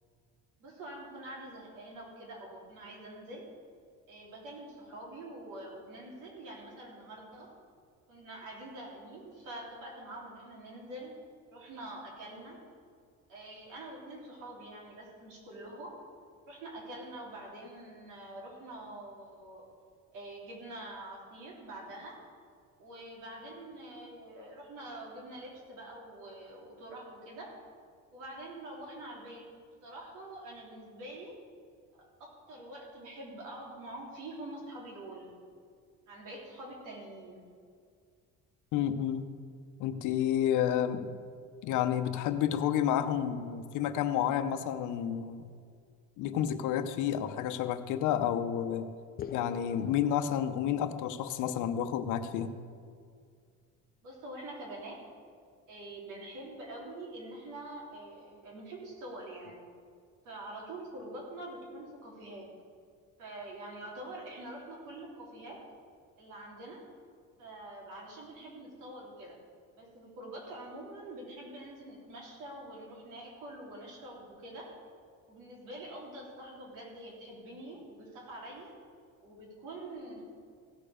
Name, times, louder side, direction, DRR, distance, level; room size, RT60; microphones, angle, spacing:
voice 1, 0.6-3.4 4.1-7.5 8.1-11.1 11.5-12.6 13.3-16.0 16.5-19.6 20.1-22.2 22.8-27.5 28.1-29.4 29.8-31.3 32.2-35.3 36.1-37.5 54.0-55.0 55.7-59.6 60.2-62.5 63.2-65.6 66.2-66.8 67.4-69.4 69.7-74.7 75.3-78.7 79.2-80.2, right 1 dB, 75° right, -3 dB, 3.6 m, -45 dB
voice 2, 38.7-39.3 39.8-41.1 41.6-45.5 46.2-48.9 49.3-52.6, left 10 dB, 70° left, 10 dB, 0.8 m, -30 dB
sound 1, 49.2-51.1, left 8 dB, 30° left, 0.4 m, -44 dB
16.5 x 6.7 x 5.1 m, 2.1 s
cardioid pair, 135°, 31 cm